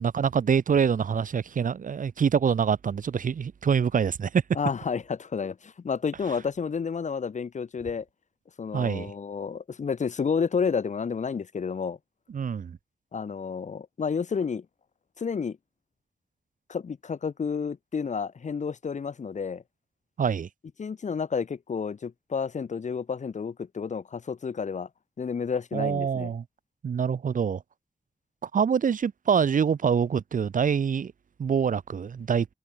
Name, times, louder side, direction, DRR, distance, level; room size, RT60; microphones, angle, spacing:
voice 1, 0.0-4.4 8.7-9.1 12.3-12.8 20.2-20.5 25.7-26.4 26.8-27.6 28.4-31.1 31.4-32.5, right 7 dB, 70° right, 1.9 m, -25 dB
voice 2, 4.5-8.0 8.6-12.0 13.1-14.6 15.2-15.6 16.7-19.6 20.8-24.9 25.2-26.3, left 6 dB, 55° left, 5.0 m, -30 dB
wide cardioid pair, 175°, 14 cm